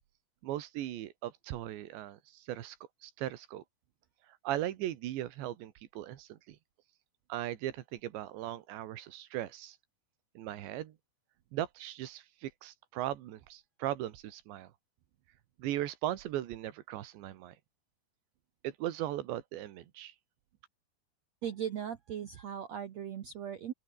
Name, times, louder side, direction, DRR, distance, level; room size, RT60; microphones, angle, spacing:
voice 1, 0.4-2.8 3.0-3.6 4.4-6.6 7.3-9.8 10.4-11.0 11.5-14.7 15.6-17.6 18.6-20.1, right 13 dB, 90° right, 3.9 m, -38 dB
voice 2, 21.4-23.7, right 9 dB, 70° right, 1.6 m, -38 dB
open air
omnidirectional pair, 5.0 m